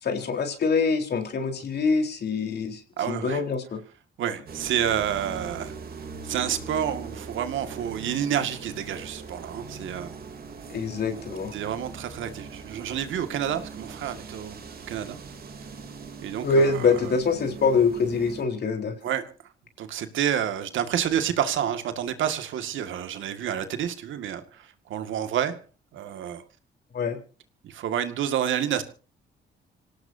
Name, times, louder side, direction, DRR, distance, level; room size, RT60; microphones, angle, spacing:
voice 1, 0.0-2.8 3.1-3.8 10.7-11.5 16.4-18.9 26.9-27.2, left 4 dB, 55° left, 5 dB, 4.0 m, -24 dB
voice 2, 3.0-3.4 4.2-5.7 6.2-10.1 11.5-14.6 14.9-15.2 16.2-17.2 19.0-19.2 19.8-25.5 25.9-26.4 27.6-28.8, right 9 dB, 75° right, 8 dB, 2.0 m, -29 dB
sound 1, 4.5-18.4, right 4 dB, 50° right, 3.2 m, -41 dB
27.0 x 17.5 x 2.8 m, 0.36 s
cardioid pair, 90°, 20 cm